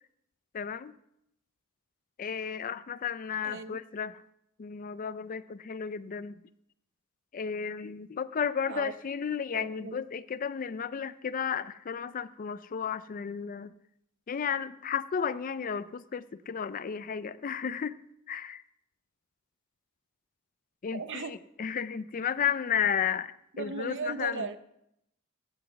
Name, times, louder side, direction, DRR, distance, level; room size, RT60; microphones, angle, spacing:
voice 1, 0.5-0.9 2.2-4.2 4.6-6.3 7.3-13.7 14.3-18.0 18.3-18.6 20.8-24.5, left 7 dB, 40° left, 0.4 m, -33 dB
voice 2, 3.4-3.8 8.7-8.9 9.5-10.0 20.9-21.3 23.5-24.6, right 4 dB, 55° right, 0.8 m, -37 dB
17.0 x 6.0 x 6.9 m
head